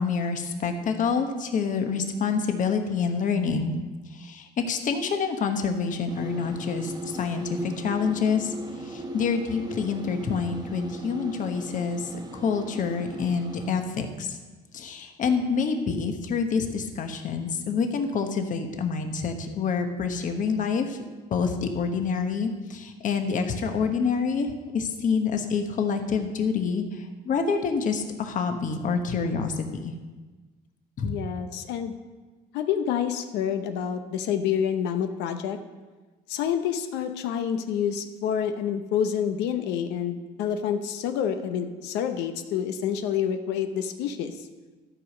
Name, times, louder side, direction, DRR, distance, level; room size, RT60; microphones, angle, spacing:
voice 1, 0.0-3.8 4.2-8.5 8.9-14.4 14.7-21.0 21.3-26.8 27.2-29.9 31.0-31.1, left 5 dB, 50° left, 6 dB, 1.1 m, -27 dB
sound 1, 6.1-13.7, right 1 dB, 25° right, 1.2 m, -38 dB
voice 2, 31.0-31.9 32.5-35.6 36.3-44.3, left 8 dB, 90° left, 7 dB, 0.7 m, -28 dB
13.0 x 5.0 x 6.4 m, 1.3 s
cardioid pair, 110°, 17 cm